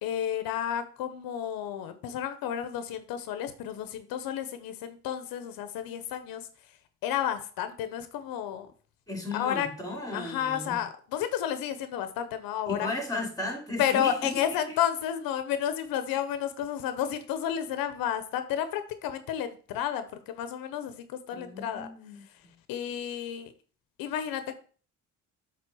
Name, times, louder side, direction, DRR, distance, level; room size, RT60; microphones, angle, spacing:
voice 1, 0.0-6.5 7.0-8.7 9.3-9.7 10.1-12.9 13.8-21.9 22.2-22.3 22.7-23.5 24.0-24.6, left 10 dB, 90° left, 11 dB, 0.9 m, -31 dB
voice 2, 9.1-10.8 12.7-14.3 14.7-14.8 21.3-22.5, left 2 dB, 10° left, 3 dB, 2.9 m, -35 dB
7.7 x 3.8 x 6.1 m, 0.40 s
cardioid pair, 95°, 34 cm